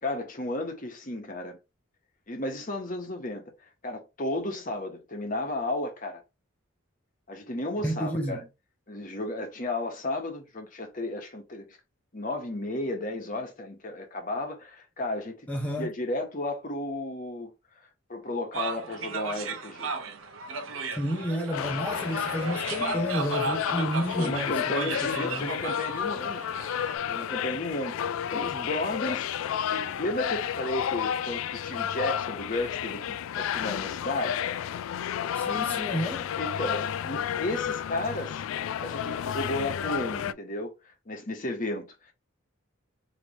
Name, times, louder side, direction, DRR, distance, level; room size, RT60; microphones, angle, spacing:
voice 1, 0.0-1.6 2.3-3.5 3.8-6.2 7.3-8.4 8.9-11.7 12.1-15.5 15.8-17.5 18.1-19.9 24.2-26.6 27.1-29.3 29.7-34.4 36.4-38.4 38.8-42.1, left 2 dB, 40° left, 1.1 m, -33 dB
voice 2, 7.8-8.5 15.5-15.9 21.0-25.5 35.3-36.3, equal, 10° left, 0.7 m, -31 dB
sound 1, 18.5-27.0, right 4 dB, 80° right, 0.7 m, -36 dB
sound 2, 21.5-40.3, left 9 dB, 80° left, 0.3 m, -31 dB
3.3 x 2.9 x 4.0 m
head